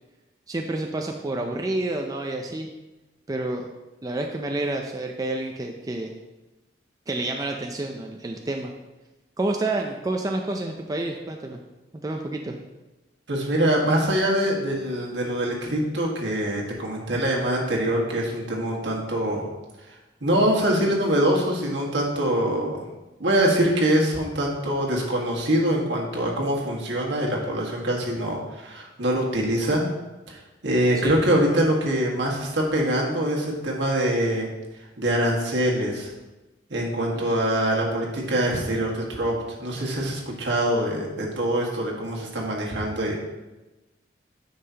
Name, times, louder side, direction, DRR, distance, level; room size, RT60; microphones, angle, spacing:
voice 1, 0.5-2.7 3.3-3.7 4.0-6.1 7.1-8.7 9.4-11.6 11.9-12.5 31.0-31.1 37.1-37.4, right 2 dB, 20° right, 2 dB, 0.4 m, -29 dB
voice 2, 13.3-19.4 19.9-20.0 20.2-22.8 23.2-29.8 30.3-34.5 35.0-36.1 36.7-43.2, right 1 dB, 70° right, -2 dB, 1.6 m, -24 dB
9.7 x 5.6 x 2.8 m, 1.1 s
head